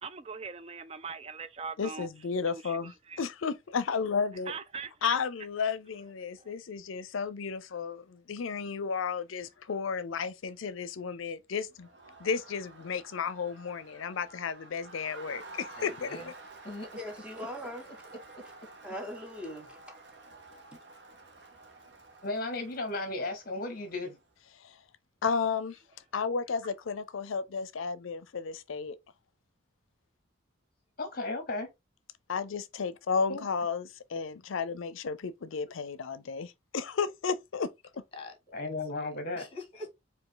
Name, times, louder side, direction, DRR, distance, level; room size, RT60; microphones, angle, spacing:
voice 1, 0.0-2.1 2.5-3.2 4.5-5.2 6.4-6.5, right 5 dB, 30° right, 0.3 m, -41 dB
voice 2, 1.8-4.5 5.0-11.9 12.2-16.2 24.6-24.8 25.2-25.8 26.1-29.0 32.3-37.7, left 5 dB, 80° left, 0.5 m, -33 dB
Crowd, 11.7-24.2, right 3 dB, 60° right, 1.0 m, -51 dB
voice 3, 15.7-16.3 16.6-16.9 17.3-18.7 38.1-38.6 38.9-39.1 39.3-40.0, left 1 dB, 30° left, 1.5 m, -45 dB
voice 4, 17.0-17.8 18.8-20.0 20.7-20.8, equal, 5° right, 1.0 m, -40 dB
voice 5, 22.2-24.2 31.0-31.7 33.3-33.4 38.5-39.4, left 2 dB, 45° left, 0.9 m, -34 dB
4.7 x 2.7 x 3.8 m
head